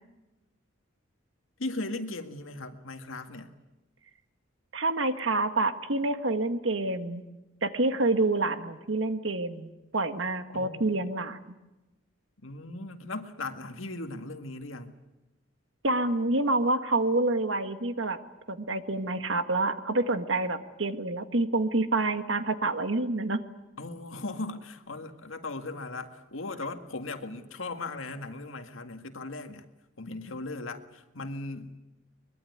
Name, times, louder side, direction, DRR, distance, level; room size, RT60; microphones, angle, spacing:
voice 1, 1.6-3.5 10.5-10.8 12.4-14.9 23.8-29.6 30.0-31.8, left 2 dB, 85° left, 7 dB, 2.0 m, -38 dB
voice 2, 4.7-7.2 7.6-11.5 15.8-18.2 18.5-23.4, right 2 dB, 70° right, 9 dB, 1.6 m, -27 dB
23.0 x 21.5 x 9.5 m, 1.0 s
head